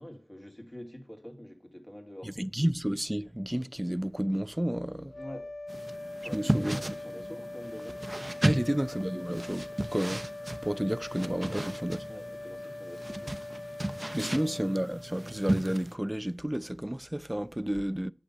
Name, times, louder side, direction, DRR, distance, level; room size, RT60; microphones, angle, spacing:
voice 1, 0.0-2.5 5.2-5.5 6.2-8.1 8.5-8.8 11.5-11.7 12.1-13.5 14.1-14.6, equal, 25° left, 2.3 m, -46 dB
voice 2, 2.2-5.1 6.3-6.8 8.4-9.7 9.9-12.0 14.1-18.1, right 1 dB, 15° right, 0.4 m, -31 dB
sound 1, 5.1-15.7, left 2 dB, 65° left, 0.9 m, -42 dB
sound 2, 5.7-15.9, right 1 dB, 30° right, 0.8 m, -35 dB
8.8 x 6.7 x 6.6 m
wide cardioid pair, 50°, 0 cm